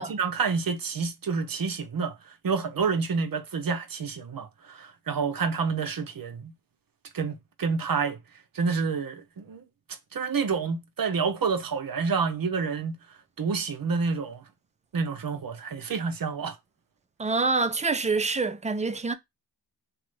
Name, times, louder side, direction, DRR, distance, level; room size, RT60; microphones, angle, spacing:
voice 1, 0.0-2.2 2.4-6.5 7.1-8.2 8.5-9.6 10.1-12.9 13.4-14.4 14.9-16.6, right 5 dB, 50° right, 0.7 m, -28 dB
voice 2, 17.2-19.1, right 3 dB, 15° right, 0.3 m, -26 dB
3.0 x 2.1 x 3.2 m
cardioid pair, 65°, 44 cm